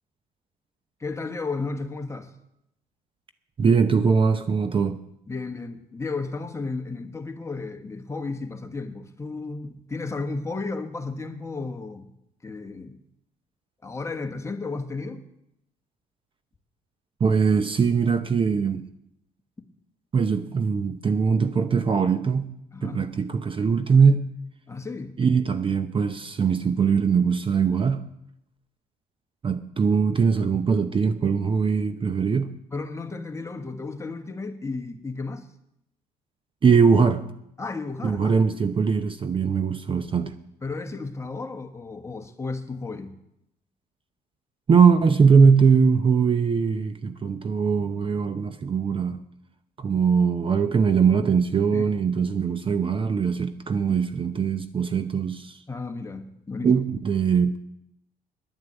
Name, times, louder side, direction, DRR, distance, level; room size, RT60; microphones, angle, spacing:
voice 1, 1.0-2.3 5.3-12.1 12.4-13.0 13.8-15.3 19.6-19.7 22.7-23.0 24.7-25.2 32.7-35.5 37.6-38.4 40.6-43.1 51.7-51.9 55.7-56.8, left 3 dB, 15° left, 1.3 m, -33 dB
voice 2, 3.6-5.0 17.2-18.8 20.1-22.5 22.8-24.3 25.2-28.1 29.4-32.5 36.6-37.2 38.0-40.3 44.7-49.2 49.8-55.6 56.6-57.6, right 5 dB, 30° right, 0.7 m, -21 dB
10.5 x 9.4 x 8.0 m
cardioid pair, 110°, 17 cm